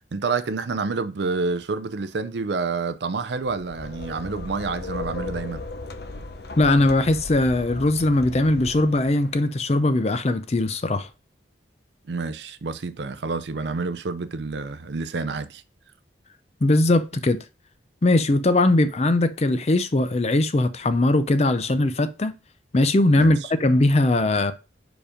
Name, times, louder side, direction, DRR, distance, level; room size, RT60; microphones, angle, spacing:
voice 1, 0.1-5.6 12.1-15.6 23.2-23.5, right 4 dB, 70° right, 0.5 m, -28 dB
sound 1, 3.4-9.3, left 2 dB, 60° left, 0.8 m, -37 dB
voice 2, 6.6-11.1 16.6-17.4 18.0-22.3 22.7-24.5, left 2 dB, 35° left, 0.5 m, -20 dB
5.0 x 5.0 x 5.0 m
head